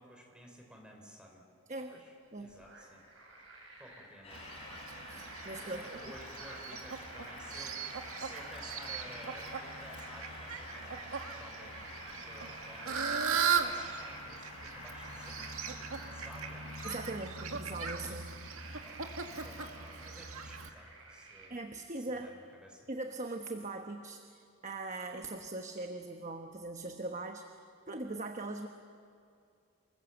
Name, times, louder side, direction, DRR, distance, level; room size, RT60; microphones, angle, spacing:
voice 1, 0.0-1.5 1.9-3.0 3.8-4.5 5.6-16.7 18.8-21.6 22.0-22.9, equal, 5° right, 1 dB, 4.2 m, -54 dB
sound 1, 2.2-21.5, right 2 dB, 70° right, 7.1 m, -53 dB
Train, 4.2-17.3, left 1 dB, 30° left, 7.1 m, -48 dB
Fowl, 4.3-20.7, right 6 dB, 85° right, 1.9 m, -39 dB
voice 2, 5.1-5.8 16.8-18.4 21.5-22.3 22.9-24.2 24.6-27.5 27.9-28.7, right 2 dB, 35° right, 5 dB, 1.1 m, -40 dB
29.0 x 20.5 x 8.0 m, 2.4 s
head